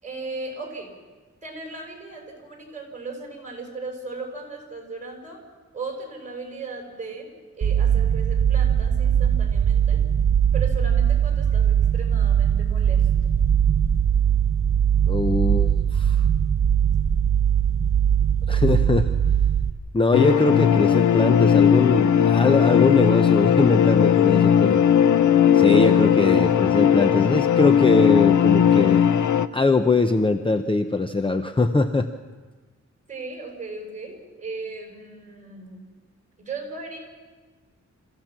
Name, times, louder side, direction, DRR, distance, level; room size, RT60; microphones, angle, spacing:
voice 1, 0.0-0.9 1.4-5.4 5.7-10.0 10.5-13.1 33.1-35.8 36.4-37.0, right 3 dB, 25° right, 1 dB, 5.4 m, -37 dB
sound 1, 7.6-19.7, right 8 dB, 50° right, 0.8 m, -20 dB
voice 2, 15.1-16.3 18.5-19.1 19.9-24.9 25.5-29.1 29.5-32.1, left 3 dB, 20° left, 7 dB, 0.6 m, -22 dB
sound 2, 20.1-29.5, left 9 dB, 85° left, 0.7 m, -18 dB
28.0 x 15.5 x 6.1 m, 1.4 s
wide cardioid pair, 140°, 29 cm